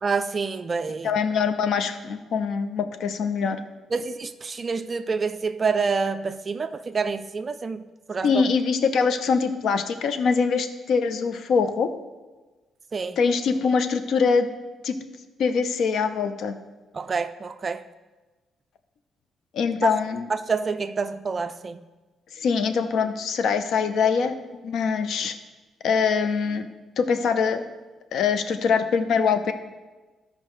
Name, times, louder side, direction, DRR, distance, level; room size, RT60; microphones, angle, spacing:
voice 1, 0.0-1.2 3.9-8.4 12.9-13.2 16.9-17.9 19.8-19.9 20.3-21.8, right 4 dB, 35° right, 0.3 m, -27 dB
voice 2, 1.0-3.6 8.2-11.9 13.2-14.5 14.8-15.0 15.4-16.5 19.5-20.3 22.4-24.4 24.6-25.3 25.8-26.7 27.0-27.6 28.1-29.5, left 5 dB, 70° left, 0.6 m, -23 dB
13.5 x 5.3 x 3.2 m
cardioid pair, 90°, 0 cm